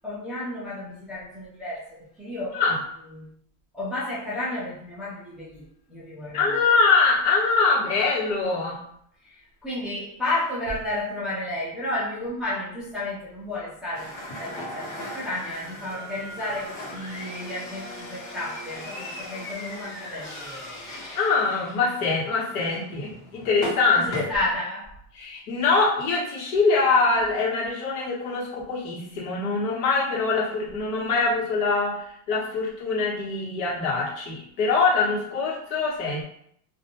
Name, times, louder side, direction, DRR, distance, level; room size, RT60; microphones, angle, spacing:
voice 1, 0.0-2.6 3.1-3.3 3.7-5.6 5.9-6.6 9.2-14.1 14.4-20.5 23.2-23.4 24.0-24.9, left 1 dB, ahead, -9 dB, 0.3 m, -32 dB
voice 2, 6.3-8.8 21.1-24.2 25.1-36.2, left 4 dB, 80° left, -4 dB, 1.2 m, -23 dB
sound 1, 13.9-24.2, left 1 dB, 40° left, 1.1 m, -38 dB
2.4 x 2.2 x 2.9 m, 0.68 s
supercardioid pair, 145°, 42 cm